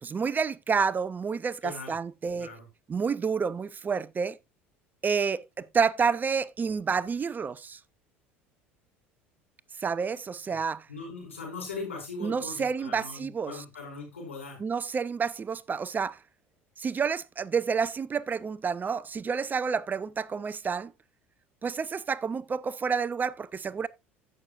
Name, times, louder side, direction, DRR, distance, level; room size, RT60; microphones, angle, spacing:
voice 1, 0.0-2.5 2.9-4.4 5.0-7.8 9.8-10.9 12.2-13.6 14.6-16.2 16.8-20.9 21.6-23.9, right 6 dB, 25° right, 0.6 m, -29 dB
voice 2, 1.6-1.9 2.3-2.7 10.5-10.6 10.9-14.6, left 3 dB, 85° left, 4.8 m, -40 dB
16.5 x 6.5 x 2.4 m
hypercardioid pair, 70°, 7 cm